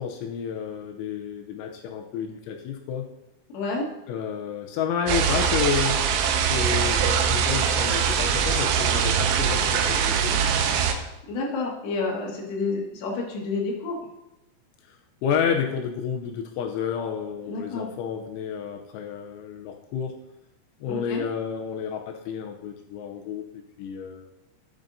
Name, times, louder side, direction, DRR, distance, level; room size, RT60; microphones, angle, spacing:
voice 1, 0.0-3.1 4.1-6.0 6.5-10.4 15.2-20.2 20.8-23.5 23.8-24.3, left 7 dB, 80° left, 4 dB, 2.8 m, -30 dB
voice 2, 3.5-3.9 11.3-14.0 17.5-17.9 20.9-21.2, left 3 dB, 65° left, -3 dB, 3.4 m, -29 dB
sound 1, 5.1-10.9, right 7 dB, 80° right, 2.7 m, -22 dB
10.5 x 9.0 x 2.7 m, 0.96 s
omnidirectional pair, 6.0 m